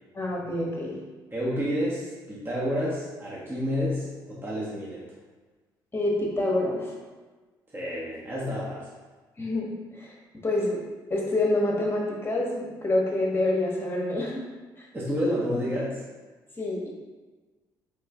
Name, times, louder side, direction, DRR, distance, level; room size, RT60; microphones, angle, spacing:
voice 1, 0.1-1.0 5.9-7.0 9.4-10.1 10.4-10.8 11.1-14.4 14.8-14.9 16.6-16.9, left 1 dB, 20° left, -2 dB, 1.2 m, -27 dB
voice 2, 1.3-5.0 7.7-8.8 14.9-16.0, equal, 20° right, -7 dB, 1.1 m, -29 dB
3.7 x 3.4 x 3.5 m, 1.3 s
figure-of-eight pair, 45°, 12 cm